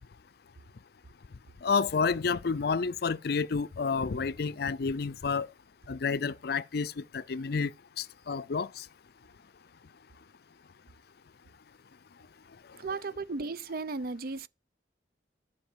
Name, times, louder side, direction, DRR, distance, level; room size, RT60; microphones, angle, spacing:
voice 1, 1.6-5.5 5.9-8.9, left 5 dB, 55° left, 0.5 m, -30 dB
voice 2, 12.8-14.5, right 3 dB, 55° right, 0.6 m, -35 dB
10.5 x 5.5 x 7.3 m
head